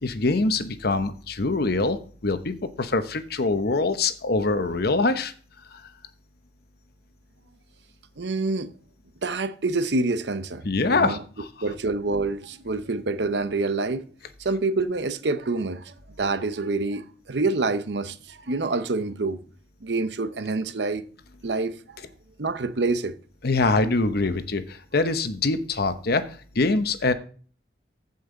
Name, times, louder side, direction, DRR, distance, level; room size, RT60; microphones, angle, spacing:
voice 1, 0.0-5.3 5.7-5.8 10.6-11.5 23.4-27.1, left 3 dB, 60° left, 0.9 m, -24 dB
voice 2, 8.2-8.7 9.2-10.6 10.9-11.2 11.6-14.0 14.4-19.4 19.8-21.0 21.4-22.0 22.4-23.1, right 3 dB, 70° right, 0.8 m, -27 dB
14.5 x 5.5 x 3.9 m
head